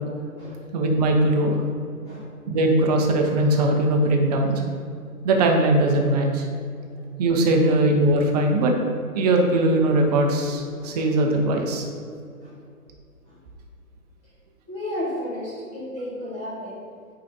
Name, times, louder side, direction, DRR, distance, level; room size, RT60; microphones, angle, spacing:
voice 1, 0.7-1.6 2.5-4.6 5.2-6.5 7.2-8.7 9.1-11.8, right 1 dB, 25° right, 2 dB, 0.9 m, -20 dB
voice 2, 14.7-16.8, left 1 dB, 15° left, -6 dB, 1.2 m, -33 dB
9.6 x 5.1 x 2.8 m, 2.3 s
figure-of-eight pair, 125°, 44 cm